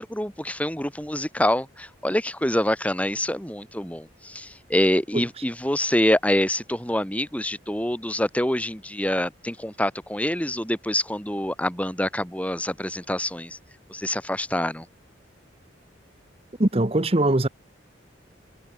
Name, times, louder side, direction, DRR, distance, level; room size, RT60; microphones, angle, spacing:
voice 1, 0.0-13.6 13.9-14.8, left 1 dB, 5° left, 3.2 m, -26 dB
voice 2, 16.6-17.5, right 1 dB, 30° right, 1.2 m, -21 dB
head